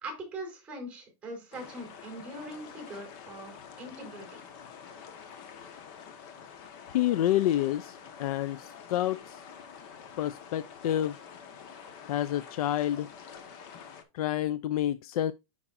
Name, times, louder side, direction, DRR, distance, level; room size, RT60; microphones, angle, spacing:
voice 1, 0.0-4.4, right 1 dB, 5° right, 4.2 m, -42 dB
sound 1, 1.5-14.0, left 7 dB, 40° left, 1.2 m, -47 dB
voice 2, 6.9-9.5 10.2-11.2 12.1-13.1 14.1-15.3, left 12 dB, 80° left, 0.4 m, -29 dB
9.9 x 5.9 x 2.5 m
supercardioid pair, 170°, 19 cm